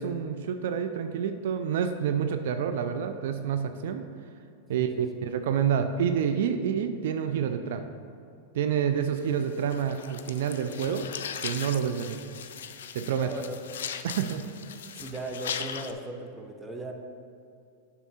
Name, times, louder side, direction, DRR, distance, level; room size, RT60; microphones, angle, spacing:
voice 1, 0.0-4.1 4.7-7.9 8.5-11.1 11.4-12.2 12.9-13.3 14.0-14.5, right 8 dB, 70° right, 9 dB, 0.4 m, -28 dB
voice 2, 4.7-5.0 13.2-13.6 15.0-16.9, right 2 dB, 10° right, 3 dB, 0.9 m, -37 dB
sound 1, 9.2-15.9, left 8 dB, 75° left, 0.4 m, -39 dB
7.4 x 5.8 x 4.2 m, 2.5 s
hypercardioid pair, 110°, 0 cm